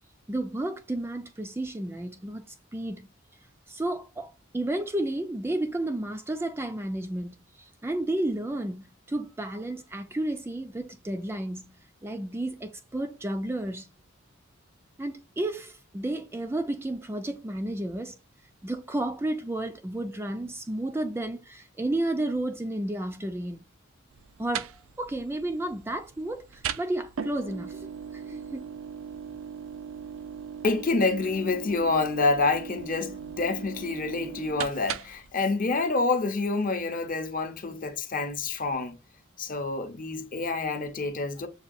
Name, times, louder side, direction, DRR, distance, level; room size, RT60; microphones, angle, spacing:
voice 1, 0.3-3.1 3.7-13.9 15.0-18.1 18.6-23.7 24.4-24.7 25.0-28.7, right 1 dB, 10° right, 0.4 m, -32 dB
sound 1, 24.1-35.3, right 7 dB, 80° right, 0.4 m, -39 dB
voice 2, 30.6-39.0 39.4-41.5, left 3 dB, 45° left, 0.7 m, -27 dB
6.8 x 2.3 x 2.5 m
head